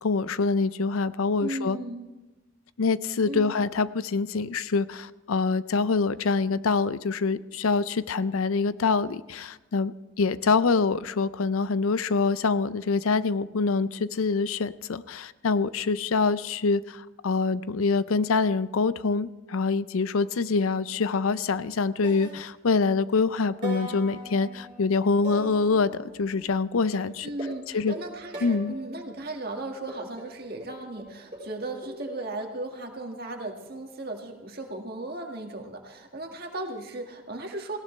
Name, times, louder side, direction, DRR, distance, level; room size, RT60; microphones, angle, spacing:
voice 1, 0.0-1.8 2.8-27.3 27.7-28.0 28.4-28.7, left 4 dB, 85° left, 16 dB, 0.5 m, -25 dB
voice 2, 1.4-2.1 3.3-3.5 27.2-37.8, right 2 dB, 45° right, 2 dB, 1.8 m, -36 dB
sound 1, 21.4-21.7 22.0-23.1 23.6-26.4 26.9-29.1 29.9-32.2, equal, 25° right, 5.1 m, -40 dB
18.5 x 17.0 x 3.2 m, 1.1 s
head